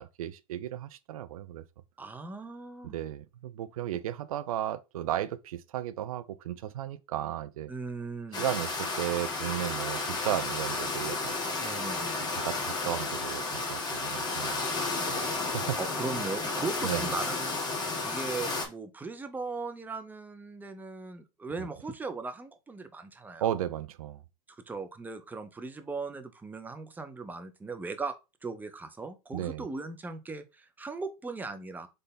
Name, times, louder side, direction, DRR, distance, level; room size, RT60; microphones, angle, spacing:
voice 1, 0.0-1.6 2.8-7.7 8.3-11.6 12.3-14.6 15.1-15.2 15.5-15.8 16.8-17.1 21.6-21.7 23.4-24.2 29.3-29.7, right 12 dB, 75° right, 0.5 m, -34 dB
voice 2, 2.0-2.9 7.7-8.4 10.1-10.2 11.6-12.2 15.4-23.6 24.5-28.1 28.4-31.9, right 3 dB, 10° right, 0.7 m, -38 dB
sound 1, 8.3-18.7, left 3 dB, 20° left, 1.6 m, -32 dB
4.1 x 3.3 x 3.9 m
hypercardioid pair, 105°, 18 cm